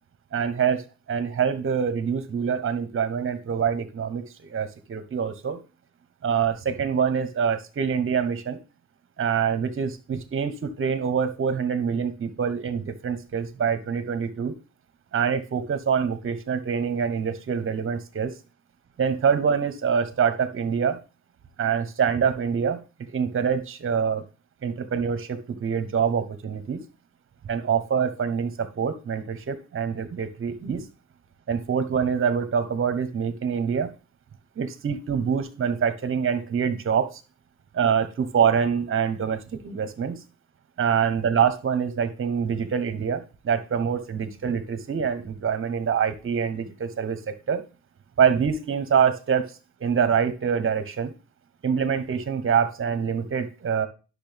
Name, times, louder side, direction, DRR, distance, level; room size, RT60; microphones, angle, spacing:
voice 1, 0.3-5.6 6.2-8.6 9.2-14.5 15.1-18.3 19.0-21.0 21.6-22.8 23.1-24.2 24.6-26.8 27.4-30.8 31.5-33.9 34.6-37.2 37.7-40.2 40.8-47.6 48.2-49.5 49.8-51.1 51.6-53.9, right 7 dB, 45° right, 11 dB, 1.2 m, -25 dB
10.0 x 6.5 x 3.5 m, 0.33 s
cardioid pair, 90°, 30 cm